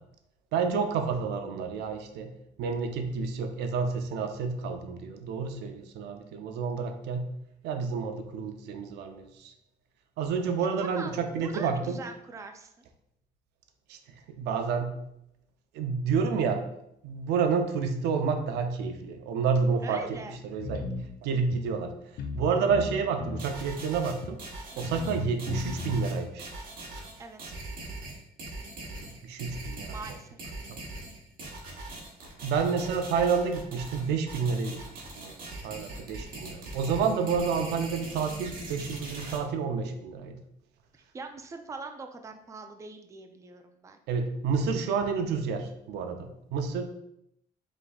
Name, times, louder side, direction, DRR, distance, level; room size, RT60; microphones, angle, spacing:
voice 1, 0.5-2.3 2.6-7.3 7.6-9.5 10.2-12.0 13.9-14.0 14.3-14.9 15.7-16.6 17.0-20.9 21.2-21.9 22.3-24.4 24.8-26.5 29.0-30.0 32.4-35.4 35.6-40.4 44.1-46.9, right 5 dB, 80° right, 6 dB, 0.6 m, -29 dB
voice 2, 10.8-12.9 19.8-20.4 24.7-24.9 27.2-27.5 29.9-30.5 41.1-44.0, right 3 dB, 20° right, 5 dB, 0.4 m, -42 dB
sound 1, 20.6-21.1 21.5-21.6 22.2-22.4 22.7-23.5 24.2-24.3 24.8-26.1, left 4 dB, 65° left, 0.7 m, -36 dB
sound 2, 23.4-39.4, right 2 dB, 60° right, 1.3 m, -41 dB
5.1 x 3.5 x 2.3 m, 0.77 s
cardioid pair, 110°, 17 cm